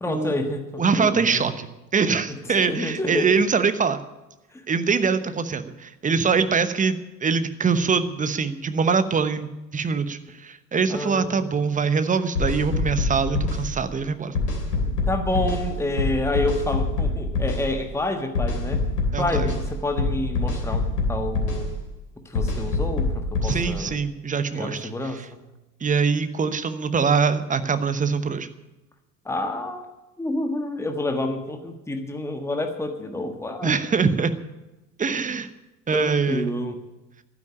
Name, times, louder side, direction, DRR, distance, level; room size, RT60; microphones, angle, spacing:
voice 1, 0.0-1.5 2.7-3.5 4.5-4.6 10.9-11.4 14.8-18.8 19.2-21.7 22.2-24.0 24.5-25.2 29.2-29.8 30.2-33.7 35.9-36.8, left 1 dB, 5° left, 5 dB, 1.4 m, -28 dB
voice 2, 0.8-1.7 1.9-4.0 4.7-14.4 19.1-19.5 23.4-25.3 25.8-28.5 33.6-34.3 35.0-35.5 35.9-36.5, right 5 dB, 15° right, 11 dB, 1.0 m, -23 dB
sound 1, 12.3-13.6 14.3-15.6 16.0-17.6 18.3-19.6 20.0-21.6 22.3-23.6, left 3 dB, 70° left, 3.2 m, -24 dB
12.0 x 10.0 x 8.7 m, 1.0 s
figure-of-eight pair, 70°, 49 cm